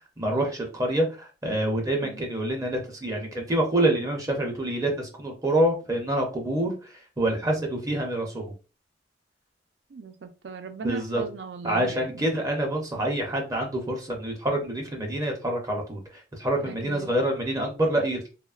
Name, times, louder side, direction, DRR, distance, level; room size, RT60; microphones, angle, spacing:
voice 1, 0.0-8.5 10.8-11.2 11.6-18.3, right 1 dB, 20° right, 0.5 m, -27 dB
voice 2, 9.9-12.3 16.6-17.2, right 4 dB, 75° right, 0.4 m, -37 dB
2.8 x 2.1 x 2.3 m
head